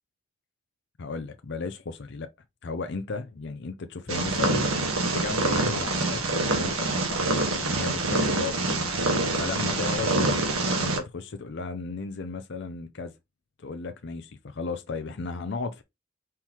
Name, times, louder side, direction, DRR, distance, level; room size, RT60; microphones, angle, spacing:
voice 1, 1.0-2.3 2.6-7.3 7.6-10.4 10.8-13.1 13.6-15.8, left 4 dB, 55° left, 0.5 m, -35 dB
Purr, 4.1-11.0, right 2 dB, 85° right, 1.3 m, -26 dB
4.4 x 3.7 x 2.9 m
head